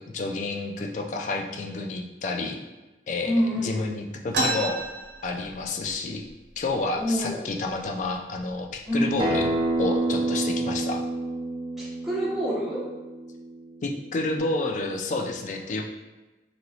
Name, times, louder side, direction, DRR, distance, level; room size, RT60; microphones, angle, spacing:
voice 1, 0.0-2.6 3.1-4.8 5.2-6.3 6.6-9.5 9.8-11.0 13.8-15.8, left 3 dB, 45° left, 2 dB, 0.3 m, -30 dB
voice 2, 3.2-3.8 6.9-7.4 8.9-9.2 11.8-12.9, equal, ahead, -8 dB, 0.8 m, -26 dB
sound 1, 4.3-5.9 6.3-6.4 6.6-7.2 7.8-8.0 8.7-8.9 9.3-9.8, right 1 dB, 70° right, 0.8 m, -30 dB
Acoustic guitar, 9.2-14.4, right 2 dB, 25° right, 0.5 m, -29 dB
3.0 x 2.9 x 2.7 m, 1.1 s
head